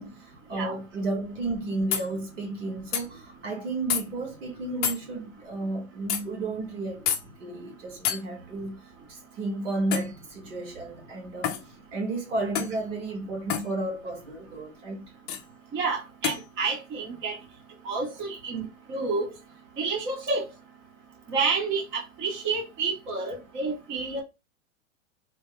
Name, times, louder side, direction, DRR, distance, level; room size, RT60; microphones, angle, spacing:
voice 1, 0.0-7.1 7.4-15.1, right 2 dB, 75° right, 1.9 m, -33 dB
sound 1, 1.9-2.1 2.9-3.1 3.9-4.0 4.8-5.0 6.1-6.2 7.1-7.2 8.0-8.2 9.9-10.2 11.4-11.7 12.5-12.8 13.5-13.7 15.3-15.4 16.2-16.4, left 9 dB, 25° left, 0.5 m, -28 dB
voice 2, 15.7-17.4 17.8-19.3 19.8-20.4 21.3-24.2, right 4 dB, 30° right, 1.2 m, -29 dB
3.5 x 2.9 x 2.2 m
hypercardioid pair, 110°, 39 cm